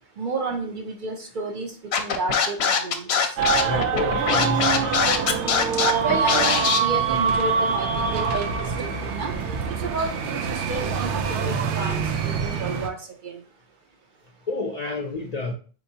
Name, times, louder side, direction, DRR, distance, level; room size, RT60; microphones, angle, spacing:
voice 1, 0.2-1.7 2.0-3.3 6.0-9.4 9.7-13.0 13.2-13.4, right 4 dB, 55° right, 4 dB, 0.6 m, -31 dB
Scratching (performance technique), 1.9-6.8, left 6 dB, 70° left, 0.8 m, -22 dB
sound 1, 3.4-12.9, right 6 dB, 90° right, 0.9 m, -25 dB
voice 2, 3.6-5.0 14.5-15.5, left 2 dB, 55° left, 1 dB, 0.4 m, -29 dB
4.2 x 3.0 x 2.7 m, 0.39 s
omnidirectional pair, 1.1 m